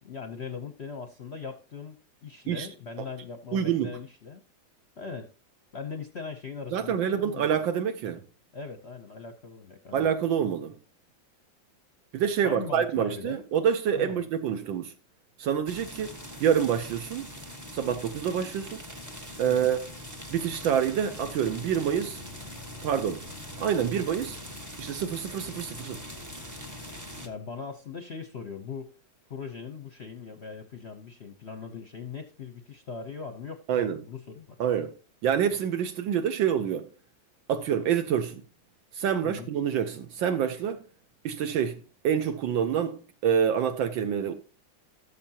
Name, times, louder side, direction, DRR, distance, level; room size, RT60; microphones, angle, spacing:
voice 1, 0.0-2.0 2.2-4.4 5.0-5.3 5.7-7.5 8.5-10.1 12.4-13.4 13.9-14.2 19.5-19.8 27.2-28.9 29.3-34.6 39.2-39.5, left 5 dB, 50° left, 0.8 m, -40 dB
voice 2, 3.5-3.9 6.7-8.2 9.9-10.7 12.1-14.9 15.4-17.3 17.7-18.8 19.4-19.8 20.3-22.2 22.8-23.2 23.6-24.4 24.8-26.1 33.7-34.0 34.6-34.9 35.2-36.9 37.5-38.4 38.9-40.8 41.2-44.3, right 8 dB, 75° right, 1.5 m, -27 dB
sound 1, 15.7-27.3, left 1 dB, 15° right, 0.8 m, -42 dB
16.5 x 6.8 x 2.8 m
omnidirectional pair, 2.1 m